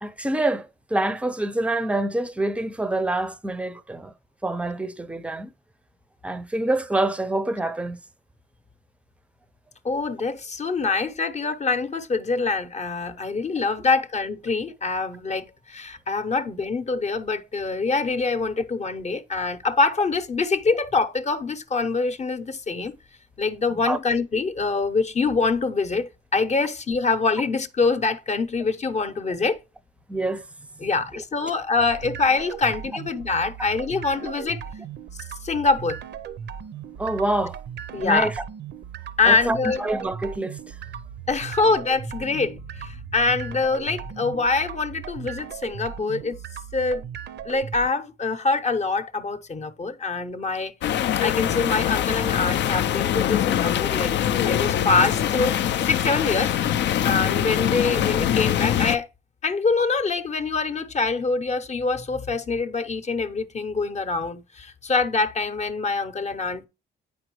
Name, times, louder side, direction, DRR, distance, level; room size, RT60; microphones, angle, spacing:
voice 1, 0.0-4.1 4.4-5.5 6.2-8.0 23.9-24.0 30.1-30.4 30.8-30.9 34.2-34.3 37.0-37.6 38.0-38.3 39.3-40.6, right 2 dB, 5° right, 0.5 m, -26 dB
voice 2, 9.8-23.0 23.4-29.6 30.8-34.6 35.4-36.0 37.9-38.3 39.2-39.8 41.3-46.4 46.7-47.1 47.4-50.7 51.2-59.1 59.4-66.7, left 4 dB, 35° left, 0.7 m, -25 dB
sound 1, 31.8-47.9, right 8 dB, 60° right, 0.5 m, -38 dB
sound 2, 50.8-59.0, left 10 dB, 65° left, 0.4 m, -23 dB
8.3 x 5.0 x 3.0 m
cardioid pair, 90°, 20 cm